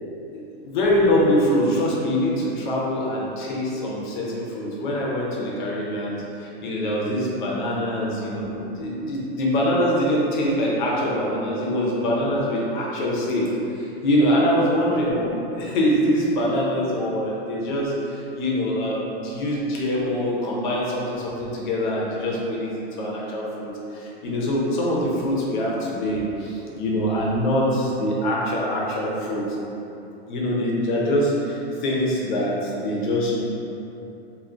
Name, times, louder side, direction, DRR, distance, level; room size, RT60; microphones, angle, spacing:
voice 1, 0.5-13.5 13.7-29.4 30.3-33.4, equal, 50° left, -4 dB, 0.7 m, -24 dB
2.5 x 2.3 x 3.3 m, 2.9 s
supercardioid pair, 175°, 32 cm